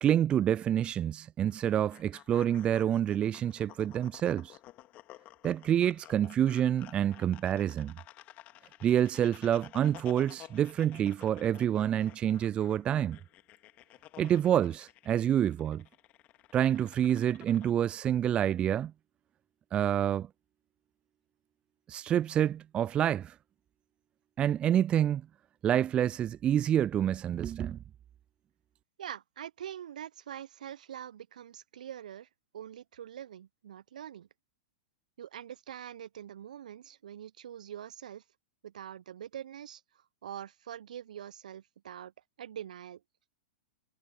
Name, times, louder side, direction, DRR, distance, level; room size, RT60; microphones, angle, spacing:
voice 1, 0.0-4.6 5.4-7.9 8.8-13.2 14.2-15.8 16.5-18.9 19.7-20.3 21.9-23.3 24.4-25.2 25.6-27.8, right 10 dB, 25° right, 0.4 m, -27 dB
sound 1, 1.5-17.7, left 16 dB, 35° left, 2.3 m, -54 dB
voice 2, 29.0-32.3 32.5-34.3 35.2-38.2 38.6-39.8 40.2-42.1 42.4-43.0, right 10 dB, 65° right, 1.0 m, -44 dB
figure-of-eight pair, 100°, 4 cm